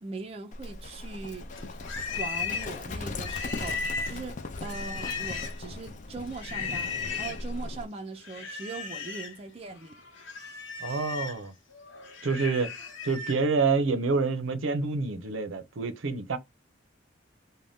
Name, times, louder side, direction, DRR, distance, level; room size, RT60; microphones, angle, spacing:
voice 1, 0.0-1.5 2.2-10.0, right 3 dB, 30° right, 0.4 m, -40 dB
Livestock farm animals working animals, 0.5-7.9, left 2 dB, 40° left, 0.4 m, -38 dB
Livestock farm animals working animals 2, 1.5-5.7 6.3-7.4 8.2-9.4 9.8-13.4, left 5 dB, 70° left, 1.0 m, -36 dB
voice 2, 10.8-11.5 12.2-12.7 13.0-16.4, right 4 dB, 80° right, 0.6 m, -27 dB
2.6 x 2.2 x 3.3 m
head